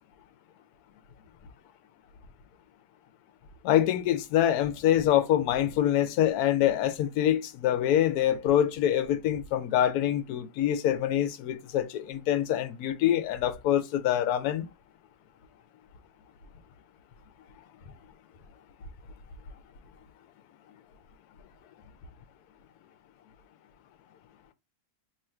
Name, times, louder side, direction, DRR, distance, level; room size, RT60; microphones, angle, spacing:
voice 1, 3.6-14.7, left 11 dB, 80° left, 1.1 m, -25 dB
3.0 x 2.5 x 4.3 m
omnidirectional pair, 1.7 m